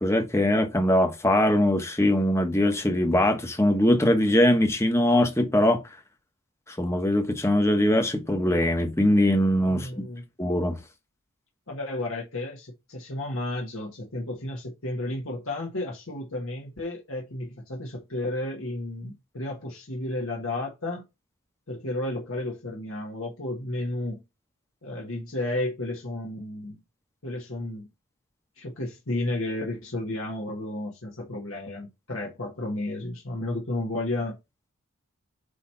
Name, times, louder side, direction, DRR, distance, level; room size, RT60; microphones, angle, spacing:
voice 1, 0.0-5.8 6.7-10.0 10.4-10.8, left 1 dB, 10° left, 1.0 m, -22 dB
voice 2, 9.7-10.2 11.7-21.0 21.7-24.2 24.8-26.8 27.2-27.9 28.6-34.4, left 1 dB, 70° left, 1.6 m, -32 dB
8.1 x 3.1 x 5.7 m
head